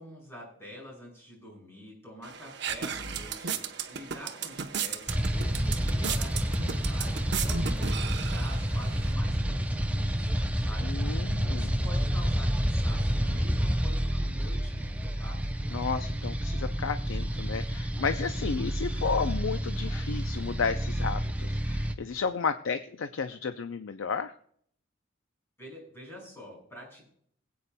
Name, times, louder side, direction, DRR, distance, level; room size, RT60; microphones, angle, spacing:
voice 1, 0.0-15.4 25.6-27.1, equal, 15° left, -2 dB, 5.4 m, -47 dB
sound 1, 2.2-9.1, right 6 dB, 60° right, 0.8 m, -35 dB
sound 2, 5.1-21.9, equal, 5° right, 0.5 m, -29 dB
voice 2, 10.8-11.7 15.7-24.3, left 5 dB, 90° left, 9 dB, 0.5 m, -32 dB
21.5 x 8.6 x 2.2 m, 0.63 s
head